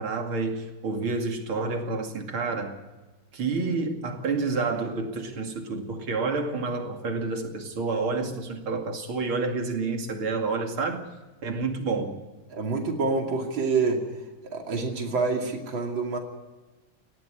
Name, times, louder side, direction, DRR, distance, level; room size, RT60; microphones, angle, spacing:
voice 1, 0.0-2.8 3.3-11.0 11.4-12.2, right 3 dB, 90° right, 3.2 m, -29 dB
voice 2, 12.5-14.0 14.5-16.2, right 4 dB, 70° right, 3.3 m, -27 dB
19.0 x 14.0 x 9.9 m
omnidirectional pair, 2.2 m